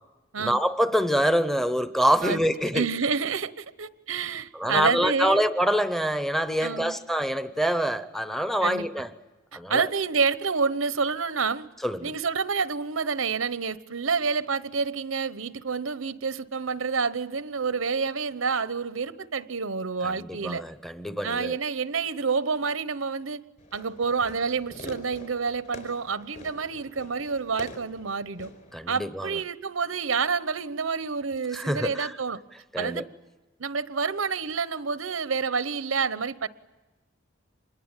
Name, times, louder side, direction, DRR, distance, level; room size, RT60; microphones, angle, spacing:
voice 1, 0.4-2.8 4.5-9.1 9.5-9.9 11.8-12.1 20.2-21.6 28.7-29.3 31.5-32.1 32.7-33.0, equal, ahead, 0.8 m, -25 dB
voice 2, 2.7-5.4 6.6-7.0 8.6-8.9 9.7-11.7 12.0-20.6 21.2-23.4 23.7-28.5 28.9-32.4 32.8-33.0 33.6-36.5, right 5 dB, 90° right, 1.0 m, -28 dB
Fireworks, 23.6-28.7, left 1 dB, 40° left, 4.4 m, -46 dB
26.5 x 21.0 x 9.0 m
head